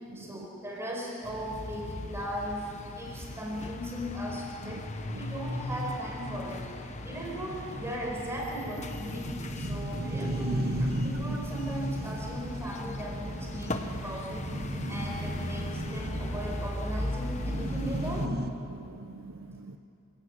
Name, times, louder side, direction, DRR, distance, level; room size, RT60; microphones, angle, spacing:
voice 1, 0.1-4.9 5.1-6.6 7.0-14.5 14.9-18.3, equal, 10° right, -1 dB, 4.9 m, -38 dB
sound 1, 1.2-18.3, left 1 dB, 30° left, 1.1 m, -38 dB
sound 2, 5.8-5.9 6.2-6.3 6.6-6.7 7.0-18.5, right 1 dB, 45° right, 1.3 m, -36 dB
voice 2, 18.7-19.8, right 3 dB, 65° right, 9 dB, 0.7 m, -45 dB
28.5 x 16.5 x 8.3 m, 2.6 s
head